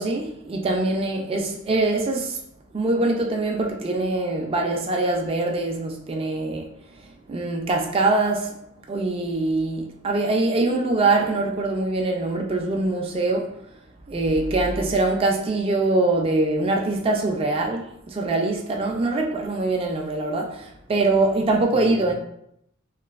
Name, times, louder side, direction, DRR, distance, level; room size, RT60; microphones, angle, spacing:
voice 1, 0.0-2.4 2.7-6.6 7.3-8.6 8.9-13.5 14.1-22.2, right 2 dB, 25° right, 0.3 m, -23 dB
3.0 x 2.5 x 2.4 m
head